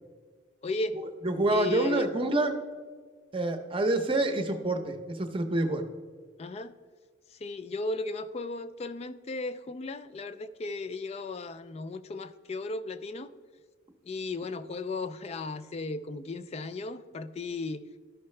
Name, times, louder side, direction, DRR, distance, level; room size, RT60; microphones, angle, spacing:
voice 1, 0.6-1.0 1.5-2.1 6.4-6.7 7.3-13.3 14.1-17.8, left 3 dB, 35° left, 12 dB, 0.3 m, -35 dB
voice 2, 1.2-2.5 3.3-5.8, right 2 dB, 25° right, 6 dB, 0.7 m, -27 dB
13.5 x 5.7 x 3.2 m, 1.5 s
head